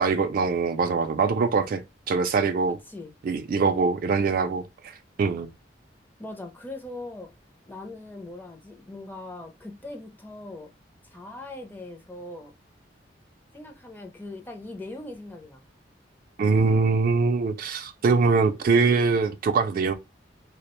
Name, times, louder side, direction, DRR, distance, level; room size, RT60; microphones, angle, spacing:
voice 1, 0.0-1.8 2.1-2.8 3.2-4.6 5.2-5.5 16.4-19.9, right 4 dB, 55° right, 0.3 m, -23 dB
voice 2, 6.2-7.3 7.7-10.7 11.1-12.5 13.5-15.6, left 2 dB, 10° left, 0.5 m, -40 dB
2.3 x 2.1 x 2.9 m
head